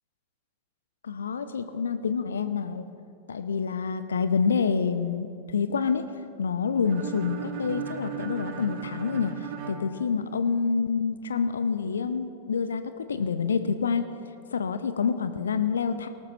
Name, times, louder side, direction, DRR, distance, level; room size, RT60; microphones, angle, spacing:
voice 1, 1.0-2.9 3.3-6.0 6.4-9.3 9.7-14.1 14.5-16.1, left 5 dB, 70° left, 10 dB, 0.7 m, -27 dB
sound 1, 6.9-10.8, right 7 dB, 45° right, 1.5 m, -37 dB
18.0 x 13.0 x 4.3 m, 2.3 s
figure-of-eight pair, 90°, 0 cm